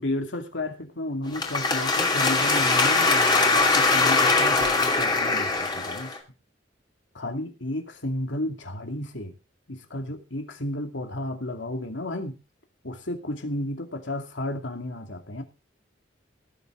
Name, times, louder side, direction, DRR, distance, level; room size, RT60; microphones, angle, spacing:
voice 1, 0.0-6.1 7.1-9.3 9.7-12.3 12.8-15.4, left 1 dB, 85° left, 5 dB, 2.5 m, -32 dB
sound 1, 1.3-6.2, left 3 dB, 25° left, 2.6 m, -22 dB
18.5 x 8.4 x 3.9 m, 0.30 s
head